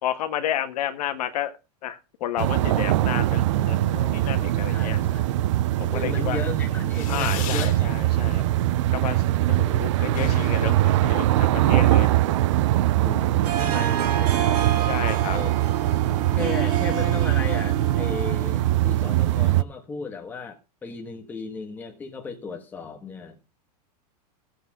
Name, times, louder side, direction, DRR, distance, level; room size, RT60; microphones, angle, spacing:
voice 1, 0.0-1.5 1.8-5.0 5.8-6.4 7.1-8.4 8.9-12.1 14.9-15.4 16.6-16.7, left 11 dB, 70° left, 1.5 m, -31 dB
sound 1, 2.4-19.6, right 14 dB, 45° right, 0.5 m, -22 dB
voice 2, 4.7-5.3 5.9-8.0 12.8-14.6 15.3-15.5 16.3-23.4, left 4 dB, 10° left, 1.5 m, -35 dB
Fireworks, 6.9-7.8 8.2-8.7 9.0-9.1 9.3-9.5 9.7-9.8 10.0-11.7, left 10 dB, 55° left, 2.8 m, -36 dB
Harp, 13.4-18.9, right 9 dB, 75° right, 2.7 m, -29 dB
16.0 x 7.8 x 3.7 m
supercardioid pair, 175°, 21 cm